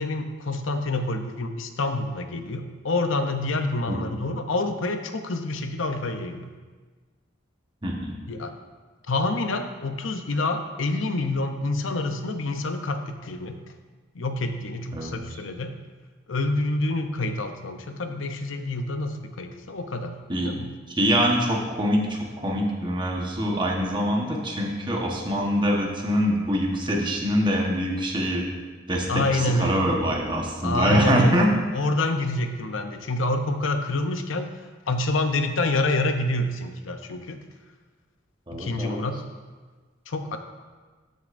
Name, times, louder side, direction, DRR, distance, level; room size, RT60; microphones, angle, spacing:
voice 1, 0.0-6.5 8.3-8.5 9.1-13.6 14.1-15.7 16.3-20.7 29.1-29.8 30.6-31.5 31.7-34.5 34.9-37.4 38.5-39.2 40.1-40.4, left 2 dB, 80° left, 7 dB, 0.7 m, -27 dB
voice 2, 7.8-8.1 14.9-15.2 20.3-20.5 20.9-28.4 28.9-31.5 38.5-39.0, equal, 25° right, -1 dB, 1.1 m, -24 dB
13.0 x 6.5 x 2.6 m, 1.4 s
head